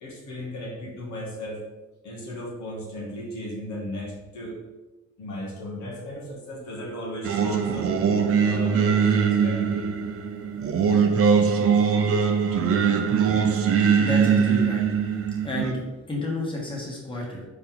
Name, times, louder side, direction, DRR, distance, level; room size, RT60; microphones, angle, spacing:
voice 1, 0.0-1.6 2.0-4.6 5.2-7.9 8.4-9.9 12.7-12.8, equal, 70° left, -2 dB, 1.2 m, -35 dB
Singing, 7.2-15.7, right 6 dB, 50° right, 0.6 m, -22 dB
voice 2, 14.0-14.8 15.4-17.5, left 1 dB, 15° left, -3 dB, 1.4 m, -31 dB
4.2 x 3.4 x 3.7 m, 1.1 s
cardioid pair, 90°, 30 cm